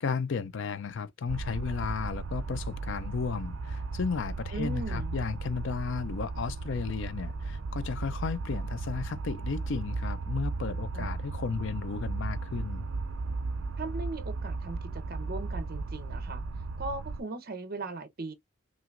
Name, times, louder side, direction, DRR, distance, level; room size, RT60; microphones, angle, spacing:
voice 1, 0.0-12.8, left 5 dB, 65° left, 0.4 m, -34 dB
sound 1, 1.3-17.2, right 3 dB, 70° right, 0.5 m, -35 dB
voice 2, 4.5-5.1 10.9-11.2 13.8-16.4 16.8-18.3, right 2 dB, 45° right, 0.9 m, -38 dB
5.8 x 2.6 x 2.5 m
head